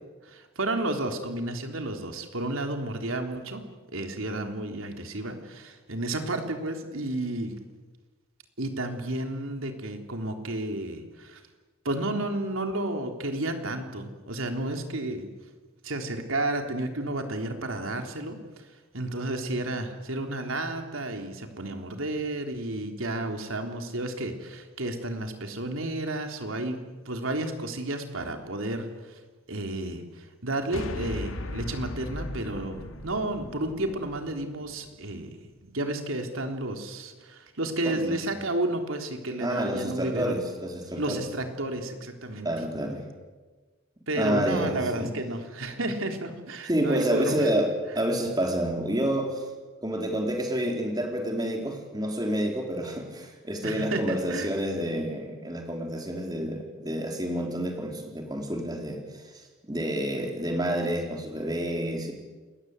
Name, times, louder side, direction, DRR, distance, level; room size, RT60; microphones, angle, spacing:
voice 1, 0.3-3.6 3.9-7.6 8.6-11.4 11.9-15.3 15.8-18.6 18.9-26.8 27.1-29.2 29.5-35.3 35.6-40.4 41.0-42.5 44.1-47.5 53.6-54.5, right 1 dB, 80° right, 4 dB, 3.5 m, -32 dB
sound 1, 30.7-35.2, left 1 dB, 80° left, 2.1 m, -38 dB
voice 2, 37.8-38.2 39.4-41.2 42.4-43.0 44.1-45.1 46.7-49.4 49.8-62.1, right 1 dB, 20° right, 2 dB, 4.1 m, -29 dB
28.0 x 21.5 x 8.2 m, 1.3 s
head